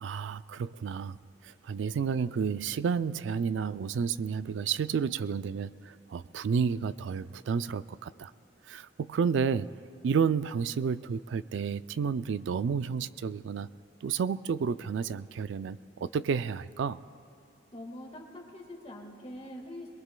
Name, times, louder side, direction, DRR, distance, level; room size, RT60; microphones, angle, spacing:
voice 1, 0.0-1.2 1.4-8.3 8.7-9.7 10.0-13.7 14.0-17.0, right 6 dB, 80° right, 15 dB, 0.3 m, -31 dB
voice 2, 17.7-19.9, left 1 dB, 35° left, 0 dB, 1.7 m, -44 dB
22.5 x 22.5 x 2.3 m, 2.6 s
head